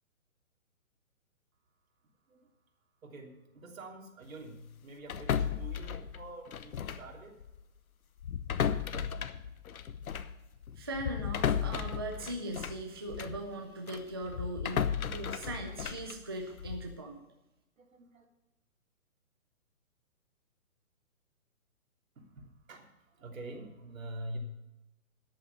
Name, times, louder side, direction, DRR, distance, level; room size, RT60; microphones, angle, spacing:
voice 1, 3.0-7.4 17.8-18.2 22.2-24.4, right 1 dB, 70° right, 1 dB, 3.3 m, -46 dB
sound 1, 5.1-7.1 7.4-7.6 8.2-13.4 13.9-16.9, left 8 dB, 80° left, 1.0 m, -35 dB
voice 2, 10.8-17.2, right 1 dB, 20° right, 2 dB, 0.5 m, -39 dB
10.5 x 8.6 x 6.8 m, 0.98 s
hypercardioid pair, 165°, 42 cm